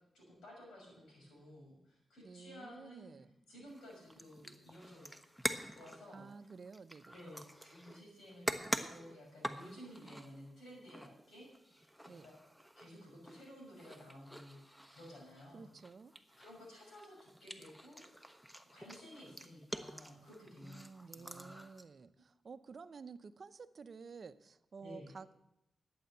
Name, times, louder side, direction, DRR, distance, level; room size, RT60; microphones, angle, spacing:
voice 1, 0.1-3.1 3.5-5.1 5.8-6.3 7.1-12.3 12.8-15.6 16.4-18.0 18.7-20.8 21.1-21.6 24.8-25.1, equal, 85° left, -2 dB, 6.1 m, -54 dB
voice 2, 2.2-3.3 6.1-7.2 12.1-12.3 15.5-16.1 20.6-25.4, right 5 dB, 60° right, 12 dB, 0.6 m, -52 dB
sound 1, 3.7-21.8, equal, ahead, 1.1 m, -46 dB
11.5 x 8.7 x 6.8 m, 0.85 s
cardioid pair, 50°, 0 cm